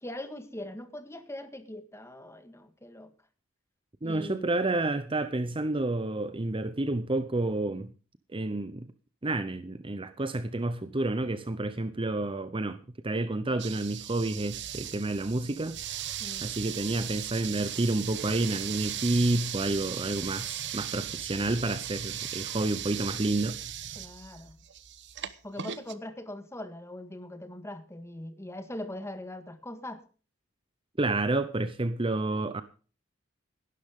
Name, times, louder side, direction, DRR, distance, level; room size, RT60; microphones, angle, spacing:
voice 1, 0.0-3.1 4.0-4.5 16.2-16.5 23.9-24.6 25.4-30.0, left 1 dB, 15° left, 1.7 m, -41 dB
voice 2, 4.0-7.9 8.3-8.9 9.2-15.8 16.4-23.6 31.0-32.6, right 2 dB, 25° right, 0.7 m, -29 dB
sound 1, 13.6-25.9, right 10 dB, 60° right, 1.1 m, -37 dB
17.0 x 12.0 x 3.7 m
head